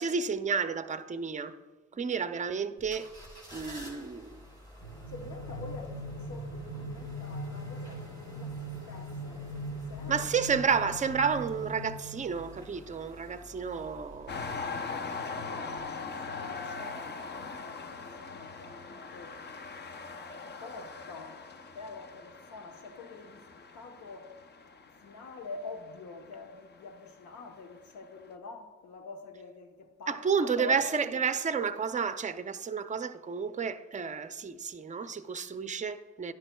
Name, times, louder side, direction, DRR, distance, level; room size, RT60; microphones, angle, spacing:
voice 1, 0.0-1.6 1.9-3.1 3.5-4.4 10.1-14.4 30.1-36.3, right 6 dB, 25° right, 0.5 m, -31 dB
sound 1, 2.8-15.3 15.7-15.8, equal, 15° left, 2.8 m, -51 dB
sound 2, 4.8-12.7, right 1 dB, 50° left, 1.4 m, -40 dB
voice 2, 5.1-10.3 15.4-15.9 16.3-19.4 19.9-20.1 20.4-21.5 21.7-24.3 25.0-31.2, left 3 dB, 70° left, 1.1 m, -46 dB
sound 3, 14.3-27.1 27.8-27.9, left 4 dB, 35° left, 0.7 m, -41 dB
11.5 x 10.0 x 2.3 m
cardioid pair, 90°, 30 cm